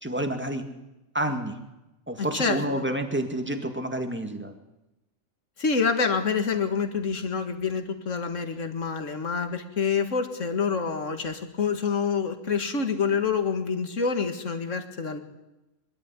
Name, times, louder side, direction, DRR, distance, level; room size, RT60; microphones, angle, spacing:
voice 1, 0.0-0.6 1.1-1.5 2.1-4.5, right 1 dB, 10° right, 5 dB, 2.1 m, -29 dB
voice 2, 2.2-2.6 5.6-15.2, left 5 dB, 70° left, 7 dB, 2.2 m, -27 dB
23.5 x 13.0 x 9.7 m, 0.97 s
omnidirectional pair, 1.4 m